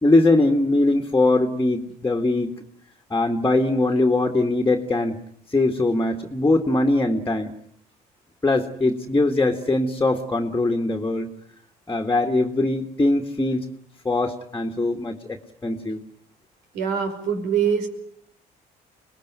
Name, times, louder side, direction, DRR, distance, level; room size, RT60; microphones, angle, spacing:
voice 1, 0.0-2.6 3.1-5.2 5.5-7.5 8.4-11.3 11.9-13.7 14.1-16.0, left 2 dB, 15° left, 2 dB, 2.0 m, -21 dB
voice 2, 16.7-17.9, right 7 dB, 90° right, 6 dB, 5.5 m, -23 dB
26.5 x 20.5 x 9.5 m, 0.69 s
cardioid pair, 110°, 17 cm